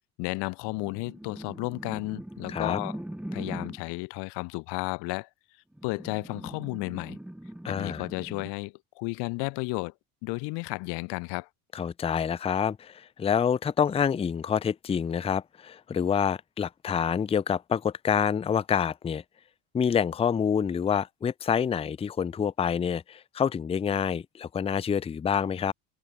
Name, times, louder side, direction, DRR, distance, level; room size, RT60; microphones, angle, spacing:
voice 1, 0.2-3.0 3.3-5.3 5.8-7.2 7.7-9.9 10.2-11.5, left 28 dB, 80° left, 0.6 m, -33 dB
sound 1, 0.7-3.9 5.7-8.5, right 1 dB, 5° right, 2.1 m, -41 dB
voice 2, 2.5-2.8 7.6-8.0 11.7-19.2 19.7-25.7, left 7 dB, 15° left, 0.4 m, -27 dB
cardioid pair, 130°, 40 cm